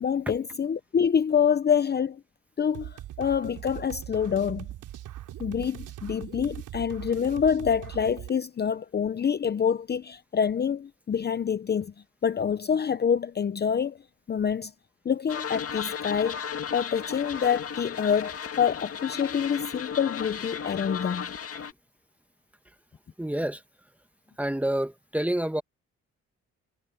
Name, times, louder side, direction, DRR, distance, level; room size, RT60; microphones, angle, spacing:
voice 1, 0.0-2.2 2.6-4.7 5.4-11.9 12.2-14.0 14.3-14.7 15.0-16.4 16.7-21.3, left 7 dB, 35° left, 0.7 m, -26 dB
sound 1, 2.7-8.3, right 13 dB, 85° right, 3.8 m, -40 dB
sound 2, 15.3-21.7, left 7 dB, 50° left, 2.1 m, -35 dB
voice 2, 23.2-23.6 24.4-25.6, right 1 dB, 5° right, 1.9 m, -28 dB
cardioid pair, 90°, 30 cm